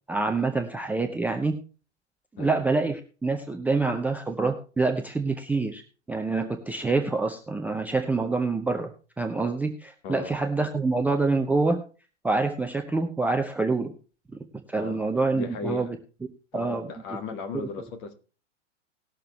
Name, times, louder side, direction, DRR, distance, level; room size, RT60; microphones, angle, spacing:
voice 1, 0.1-1.5 2.4-5.8 6.1-8.9 9.2-11.8 12.2-13.9 14.7-16.0 16.5-16.9 17.5-17.7, right 3 dB, 5° right, 0.6 m, -26 dB
voice 2, 10.0-10.4 14.8-15.0 15.3-15.9 16.5-18.1, left 4 dB, 45° left, 1.8 m, -36 dB
19.0 x 6.7 x 3.1 m
figure-of-eight pair, 105°, 37 cm